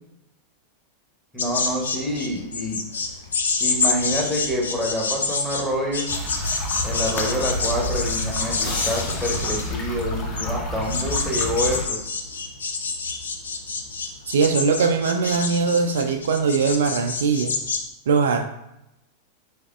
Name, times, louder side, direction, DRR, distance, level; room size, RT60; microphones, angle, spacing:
voice 1, 1.3-2.8 3.6-6.1 6.8-12.0, equal, 5° left, -3 dB, 0.9 m, -27 dB
sound 1, 1.4-17.8, left 4 dB, 70° left, 0.4 m, -27 dB
sound 2, 6.1-11.9, left 1 dB, 30° left, 0.7 m, -29 dB
sound 3, 8.6-10.9, left 2 dB, 50° left, 1.5 m, -36 dB
voice 2, 14.3-17.5 18.1-18.4, right 5 dB, 60° right, 5 dB, 0.3 m, -21 dB
3.9 x 3.5 x 2.2 m, 0.85 s
figure-of-eight pair, 90°, 0 cm